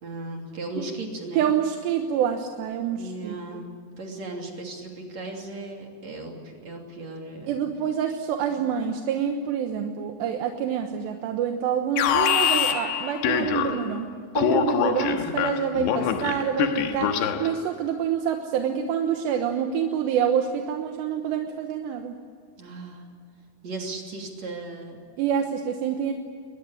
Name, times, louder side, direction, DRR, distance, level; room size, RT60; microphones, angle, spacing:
voice 1, 0.0-1.5 3.0-3.7 4.0-7.6 8.5-8.6 15.1-15.4 22.6-23.0 23.6-25.0, right 2 dB, 45° right, 1 dB, 3.8 m, -36 dB
voice 2, 1.4-3.6 7.5-14.1 14.3-22.2 25.2-26.1, right 8 dB, 80° right, 4 dB, 3.4 m, -27 dB
Alarm, 12.0-14.0 14.4-17.6, left 8 dB, 85° left, 3.6 m, -25 dB
22.5 x 20.0 x 9.7 m, 2.2 s
omnidirectional pair, 4.9 m